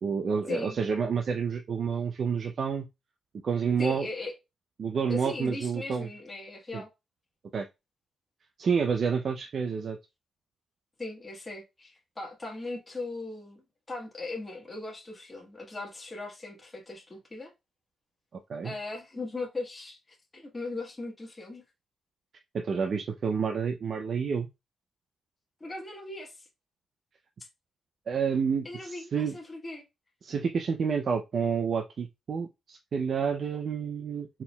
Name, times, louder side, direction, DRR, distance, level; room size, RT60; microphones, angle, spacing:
voice 1, 0.0-2.9 3.4-4.1 4.8-6.1 6.7-6.8 7.5-7.7 8.6-10.0 18.5-18.7 22.5-24.5 28.1-29.4 30.2-34.4, right 6 dB, 55° right, 0.5 m, -29 dB
voice 2, 3.8-4.3 5.1-6.9 11.0-17.5 18.6-20.0 20.3-21.6 25.6-26.5 28.6-29.8, left 3 dB, 20° left, 1.4 m, -38 dB
4.4 x 3.7 x 2.2 m
cardioid pair, 100°, 0 cm